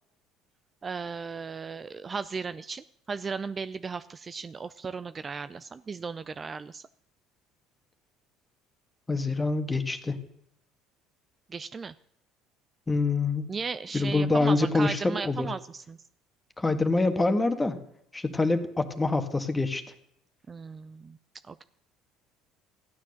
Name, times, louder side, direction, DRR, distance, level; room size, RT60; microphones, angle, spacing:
voice 1, 0.8-6.9 11.5-11.9 13.5-16.0 20.5-21.2 21.5-21.6, right 5 dB, 30° right, 13 dB, 0.5 m, -36 dB
voice 2, 9.1-10.2 12.9-13.5 13.9-15.5 16.6-17.8 18.1-19.8, left 3 dB, 15° left, 8 dB, 1.6 m, -25 dB
14.0 x 9.4 x 6.4 m, 0.73 s
hypercardioid pair, 75°, 0 cm